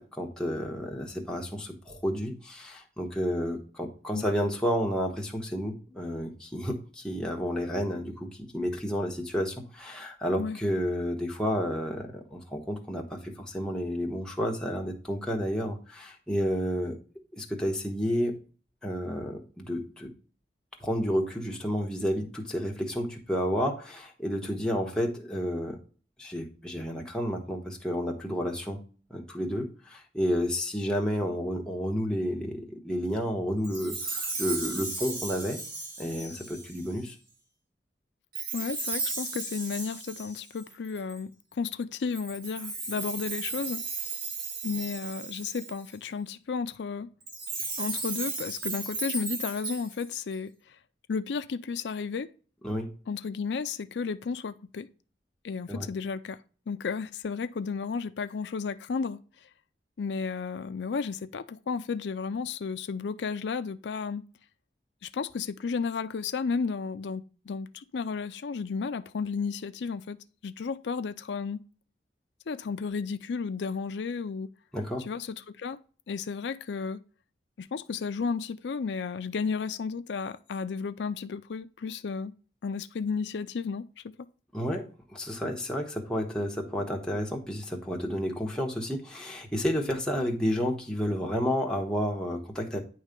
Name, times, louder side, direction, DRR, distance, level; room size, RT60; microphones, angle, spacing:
voice 1, 0.0-17.0 17.3-18.4 18.8-20.1 20.8-25.8 26.2-28.8 29.1-35.6 36.0-37.2 52.6-52.9 55.7-55.9 74.7-75.0 84.5-92.8, equal, 5° left, 1.1 m, -31 dB
Chime, 33.6-37.0 38.3-41.2 42.1-45.9 47.2-50.3, right 3 dB, 55° right, 1.9 m, -35 dB
voice 2, 38.5-43.8 44.6-47.1 47.8-50.8 51.1-52.3 53.1-54.9 55.4-56.4 56.7-59.2 60.0-64.2 65.0-70.2 70.4-71.6 72.5-74.5 75.0-75.8 76.1-77.0 77.6-82.3 82.6-84.3, left 5 dB, 85° left, 0.4 m, -33 dB
9.5 x 3.2 x 5.2 m
head